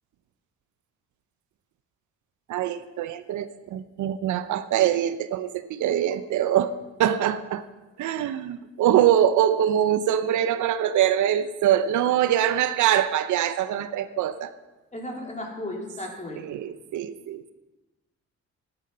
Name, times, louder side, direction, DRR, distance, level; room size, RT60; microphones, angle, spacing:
voice 1, 2.5-6.7 7.0-7.6 8.0-14.5 16.4-17.4, right 10 dB, 80° right, 12 dB, 0.8 m, -23 dB
voice 2, 14.9-16.4, left 1 dB, 25° left, 0 dB, 3.5 m, -35 dB
13.0 x 11.0 x 5.6 m, 1.1 s
cardioid pair, 90°, 30 cm